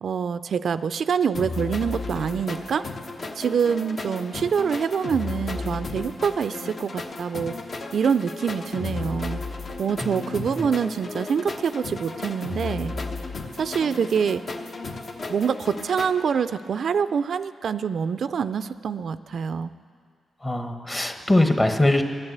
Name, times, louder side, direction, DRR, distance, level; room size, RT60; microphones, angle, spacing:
voice 1, 0.0-2.8 3.4-7.6 7.9-9.4 9.8-12.9 13.5-14.4 15.3-19.7, right 6 dB, 70° right, 13 dB, 0.3 m, -25 dB
sound 1, 1.3-16.1, left 3 dB, 55° left, 1.0 m, -34 dB
voice 2, 10.0-10.5 20.4-22.0, left 1 dB, 20° left, 6 dB, 1.1 m, -22 dB
13.0 x 8.9 x 7.9 m, 2.1 s
cardioid pair, 70°, 0 cm